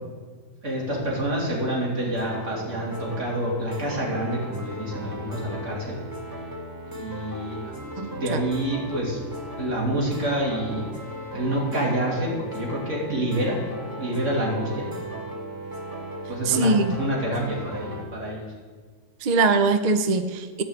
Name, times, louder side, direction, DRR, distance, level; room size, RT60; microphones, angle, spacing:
voice 1, 0.6-6.0 6.9-7.6 8.1-9.2 9.6-10.9 11.3-13.6 14.0-14.9 16.3-18.5, right 1 dB, 45° right, -3 dB, 3.0 m, -27 dB
sound 1, 2.2-18.0, right 1 dB, 15° right, 1.7 m, -37 dB
voice 2, 8.0-8.4 16.4-16.9 19.2-20.6, right 3 dB, 80° right, 8 dB, 0.3 m, -22 dB
13.0 x 5.4 x 8.1 m, 1.5 s
omnidirectional pair, 1.7 m